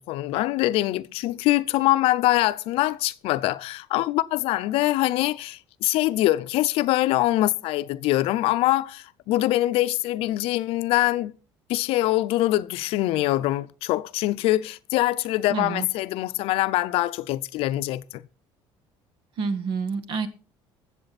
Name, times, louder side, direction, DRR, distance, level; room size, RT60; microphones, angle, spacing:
voice 1, 0.0-11.3 11.7-18.2, left 16 dB, 75° left, 0.6 m, -24 dB
voice 2, 15.5-15.9 19.4-20.3, right 5 dB, 60° right, 1.6 m, -28 dB
20.5 x 7.5 x 4.2 m
cardioid pair, 110°, 10 cm